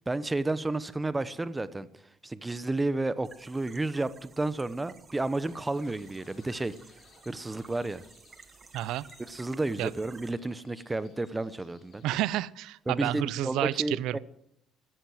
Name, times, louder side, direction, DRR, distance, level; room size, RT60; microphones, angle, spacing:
voice 1, 0.1-1.9 2.2-6.8 7.3-8.0 9.2-12.0 12.9-14.2, right 2 dB, 15° right, 15 dB, 0.9 m, -31 dB
sound 1, 3.2-10.3, right 5 dB, 30° right, 1.2 m, -55 dB
sound 2, 5.4-12.4, left 5 dB, 50° left, 4.1 m, -61 dB
voice 2, 8.7-9.0 9.8-9.9 12.0-14.2, right 14 dB, 80° right, 21 dB, 0.6 m, -30 dB
14.0 x 13.5 x 7.8 m, 0.75 s
cardioid pair, 125°, 0 cm